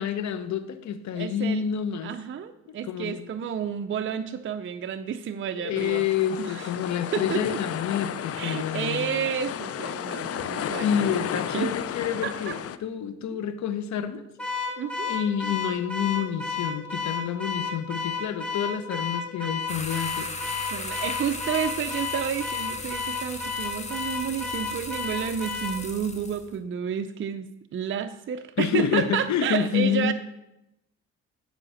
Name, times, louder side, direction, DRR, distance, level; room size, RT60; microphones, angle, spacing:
voice 1, 0.0-2.1 2.7-3.2 5.6-9.1 10.7-14.2 15.0-20.3 28.6-30.1, left 8 dB, 65° left, 11 dB, 0.9 m, -28 dB
voice 2, 1.1-1.6 2.0-6.1 6.4-6.7 7.1-7.6 8.4-11.7 12.2-12.5 13.3-13.4 14.8-15.1 20.6-30.1, right 8 dB, 40° right, 8 dB, 0.5 m, -31 dB
sound 1, 5.8-12.8, left 9 dB, 50° left, 0.6 m, -33 dB
Car / Alarm, 14.4-25.8, left 4 dB, 5° left, 2.3 m, -32 dB
sound 2, 19.7-26.5, left 3 dB, 25° left, 1.3 m, -37 dB
10.5 x 4.9 x 6.4 m, 0.89 s
cardioid pair, 90°, 30 cm